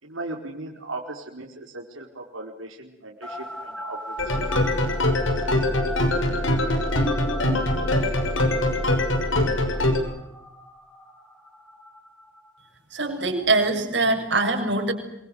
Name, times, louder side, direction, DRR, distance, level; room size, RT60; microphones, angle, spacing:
voice 1, 0.0-4.5 5.4-5.5, right 2 dB, 90° right, -1 dB, 5.0 m, -38 dB
sound 1, 3.2-12.7, left 1 dB, 5° left, 3.4 m, -39 dB
sound 2, 4.2-10.0, left 1 dB, 80° left, 6.4 m, -23 dB
voice 2, 12.9-14.9, right 2 dB, 60° right, 3 dB, 6.9 m, -23 dB
26.5 x 25.0 x 7.9 m, 0.85 s
head